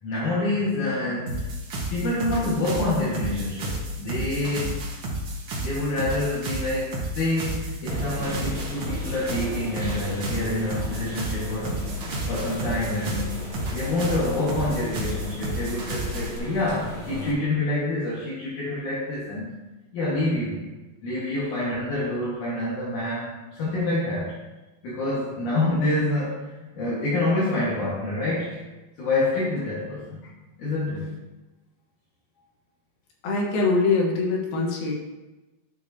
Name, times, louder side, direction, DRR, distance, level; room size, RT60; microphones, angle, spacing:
voice 1, 0.0-1.5 1.9-4.8 5.6-11.9 12.3-13.4 13.7-19.5 19.9-20.6 21.0-24.4 24.8-28.6 29.0-30.2 30.6-31.1, left 2 dB, 60° left, -8 dB, 2.9 m, -27 dB
sound 1, 1.3-16.4, right 1 dB, 55° right, 1.8 m, -31 dB
sound 2, 7.9-17.3, left 1 dB, ahead, 2.1 m, -37 dB
voice 2, 33.2-34.9, left 3 dB, 80° left, -1 dB, 3.2 m, -23 dB
10.5 x 6.9 x 2.8 m, 1.1 s
omnidirectional pair, 4.1 m